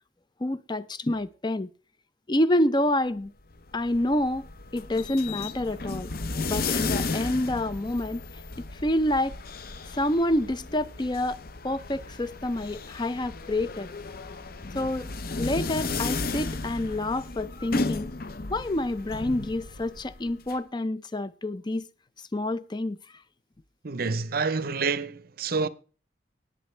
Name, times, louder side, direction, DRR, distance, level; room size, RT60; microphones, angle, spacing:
voice 1, 0.4-1.7 2.3-3.3 3.7-4.5 4.7-6.1 6.5-8.2 8.8-9.4 9.9-11.4 11.6-13.9 14.7-15.1 15.4-18.1 18.5-21.9 22.3-23.0, left 1 dB, 25° left, 0.6 m, -27 dB
sound 1, 3.5-20.6, left 3 dB, 55° left, 0.8 m, -34 dB
voice 2, 23.8-25.7, right 4 dB, 55° right, 0.8 m, -28 dB
19.5 x 7.4 x 3.3 m
head